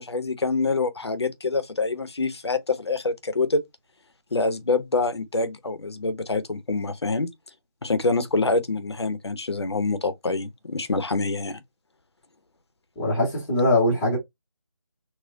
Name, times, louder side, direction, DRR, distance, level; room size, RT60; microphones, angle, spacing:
voice 1, 0.0-3.6 4.3-7.3 7.8-11.6, left 3 dB, 60° left, 0.7 m, -26 dB
voice 2, 13.0-14.2, left 1 dB, 5° left, 0.7 m, -21 dB
4.2 x 2.1 x 2.7 m
figure-of-eight pair, 160°, 16 cm